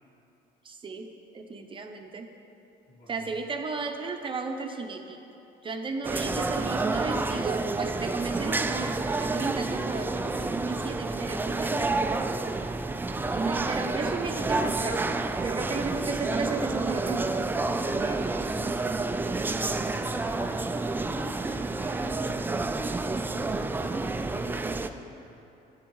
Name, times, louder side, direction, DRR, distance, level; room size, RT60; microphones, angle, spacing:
voice 1, 0.6-1.1 1.3-2.3 3.1-5.2 5.6-12.5 13.3-17.5 18.0-18.2, right 4 dB, 30° right, 4 dB, 0.7 m, -34 dB
voice 2, 2.9-3.4 18.2-18.4 20.4-25.4, left 1 dB, 80° left, -4 dB, 2.2 m, -49 dB
sound 1, 6.0-24.9, right 3 dB, 10° right, 0.3 m, -29 dB
11.5 x 9.6 x 3.1 m, 2.9 s
cardioid pair, 110°, 17 cm